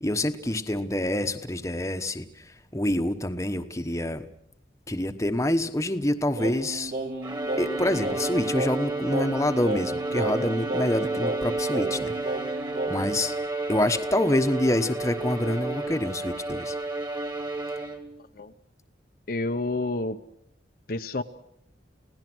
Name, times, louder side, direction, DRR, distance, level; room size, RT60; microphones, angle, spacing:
voice 1, 0.0-2.4 2.7-4.2 4.9-6.9 7.6-12.4 12.9-13.3 13.7-16.8, left 1 dB, 15° left, 8 dB, 1.1 m, -26 dB
Singing, 6.4-13.2, right 2 dB, 60° right, 3.6 m, -33 dB
Bowed string instrument, 7.2-18.3, right 2 dB, 25° right, 2.1 m, -32 dB
voice 2, 19.3-20.2 20.9-21.2, left 2 dB, 50° left, 7 dB, 0.8 m, -29 dB
30.0 x 17.5 x 6.2 m, 0.76 s
head